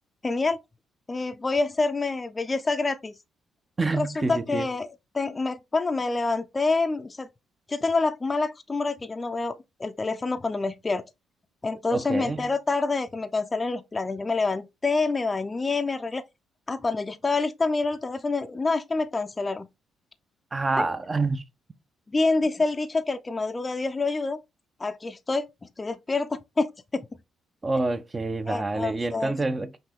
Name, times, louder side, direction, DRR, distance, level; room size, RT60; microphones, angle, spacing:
voice 1, 0.2-0.6 1.1-3.1 3.9-4.9 5.1-7.3 7.7-11.0 11.6-16.2 16.7-19.7 20.7-20.9 22.1-24.4 24.8-25.5 25.8-27.1 28.5-29.3, left 3 dB, 25° left, 0.5 m, -27 dB
voice 2, 3.8-4.7 11.9-12.5 20.5-21.4 27.6-29.8, right 3 dB, 25° right, 0.6 m, -27 dB
5.6 x 2.7 x 3.5 m
cardioid pair, 90°, 0 cm